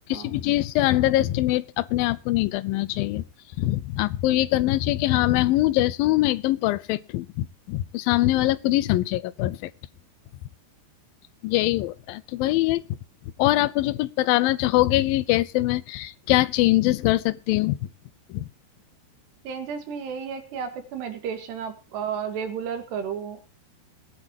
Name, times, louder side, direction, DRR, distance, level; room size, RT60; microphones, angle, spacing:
voice 1, 0.1-3.2 3.6-9.7 11.4-12.8 13.4-17.8 18.3-18.5, left 16 dB, 75° left, 2.3 m, -23 dB
voice 2, 19.4-23.5, right 7 dB, 85° right, 4.2 m, -32 dB
21.5 x 10.0 x 3.0 m
omnidirectional pair, 4.7 m